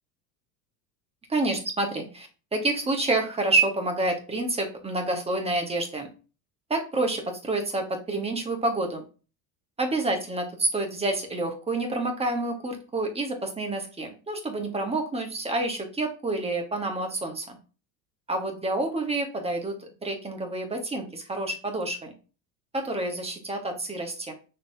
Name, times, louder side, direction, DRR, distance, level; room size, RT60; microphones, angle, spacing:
voice 1, 1.3-6.1 6.7-9.0 9.8-17.5 18.3-22.1 22.7-24.3, right 2 dB, 15° right, 3 dB, 1.1 m, -28 dB
6.1 x 3.1 x 2.7 m, 0.35 s
supercardioid pair, 120°, 40 cm